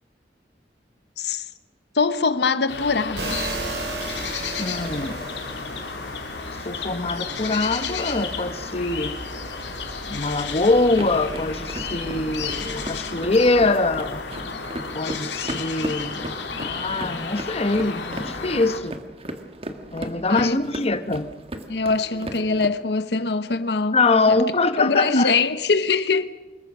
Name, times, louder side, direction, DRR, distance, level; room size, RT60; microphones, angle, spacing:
voice 1, 1.2-1.5 1.9-3.4 20.3-20.6 21.7-24.0 24.3-24.4 24.8-26.3, left 4 dB, 70° left, 1.0 m, -22 dB
sound 1, 2.7-18.8, left 5 dB, 85° left, 2.9 m, -32 dB
sound 2, 3.2-13.0, right 2 dB, 75° right, 6.4 m, -37 dB
voice 2, 4.6-5.2 6.6-9.2 10.1-14.2 14.9-16.2 16.5-19.0 19.9-21.3 23.9-25.3, left 3 dB, 35° left, 1.1 m, -23 dB
sound 3, 10.9-22.7, right 1 dB, 35° right, 1.8 m, -37 dB
25.5 x 22.0 x 6.1 m
head